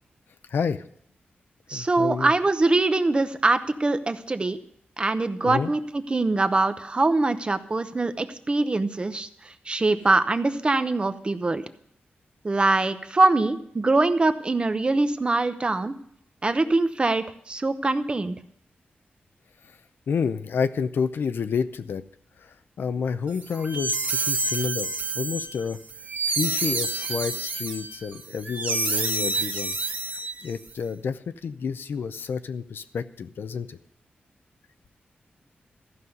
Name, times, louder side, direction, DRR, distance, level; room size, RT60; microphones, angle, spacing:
voice 1, 0.5-0.8 1.7-2.3 5.4-5.7 20.1-22.0 22.4-25.8 26.3-29.7 30.1-33.8, left 6 dB, 80° left, 11 dB, 0.6 m, -29 dB
voice 2, 1.7-4.6 5.0-9.3 9.7-11.6 12.4-16.0 16.4-18.3, right 2 dB, 30° right, 11 dB, 0.8 m, -23 dB
sound 1, 23.4-30.7, right 3 dB, 50° right, 1.5 m, -28 dB
14.0 x 5.5 x 7.9 m, 0.68 s
wide cardioid pair, 115°, 4 cm